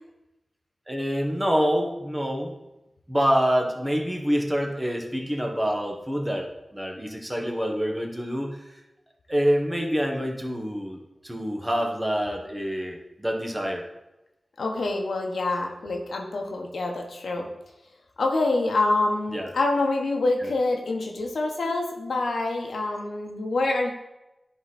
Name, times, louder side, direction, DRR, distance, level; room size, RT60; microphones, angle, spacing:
voice 1, 0.9-2.5 3.1-8.8 9.3-13.8 19.3-19.5 20.4-20.5, equal, 15° right, 1 dB, 1.4 m, -26 dB
voice 2, 14.6-17.5 18.2-23.9, left 2 dB, 90° left, 1 dB, 1.1 m, -26 dB
10.5 x 3.9 x 4.2 m, 0.95 s
wide cardioid pair, 60°, 0 cm